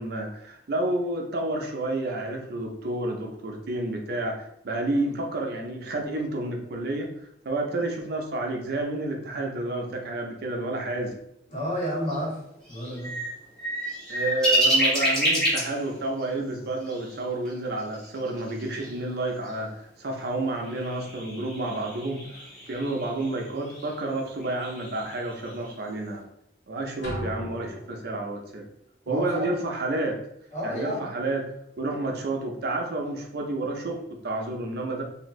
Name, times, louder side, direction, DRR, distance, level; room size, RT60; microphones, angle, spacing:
voice 1, 0.0-7.1 7.4-11.2 14.1-22.2 22.7-26.3 26.7-28.7 29.1-30.2 30.6-31.5 31.8-35.0, right 2 dB, 60° right, 2 dB, 0.5 m, -30 dB
voice 2, 11.5-12.4 12.7-13.1 29.0-29.5 30.5-31.1, equal, 40° left, -6 dB, 1.3 m, -30 dB
sound 1, 12.1-12.2 12.7-15.8 16.2-16.3 16.8-17.1 17.4-17.5 17.8-18.9 19.4-19.5 20.6-23.9 24.4-25.7, equal, 5° left, 1.1 m, -28 dB
sound 2, 27.0-28.5, equal, 65° left, 1.0 m, -37 dB
2.7 x 2.5 x 3.0 m, 0.76 s
head